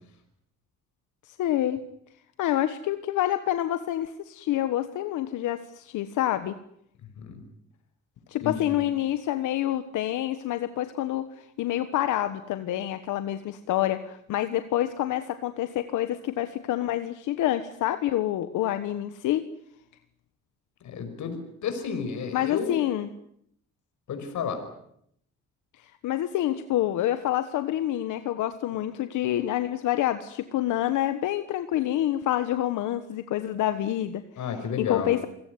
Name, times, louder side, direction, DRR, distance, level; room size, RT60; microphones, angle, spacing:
voice 1, 1.3-1.8 2.4-6.6 8.3-19.5 22.3-23.1 25.8-34.5 34.8-35.3, left 13 dB, 85° left, 10 dB, 1.3 m, -27 dB
voice 2, 8.4-8.8 20.8-22.8 24.1-24.6 34.4-35.1, left 6 dB, 70° left, 7 dB, 5.4 m, -32 dB
27.5 x 17.5 x 9.5 m, 0.72 s
cardioid pair, 90°, 30 cm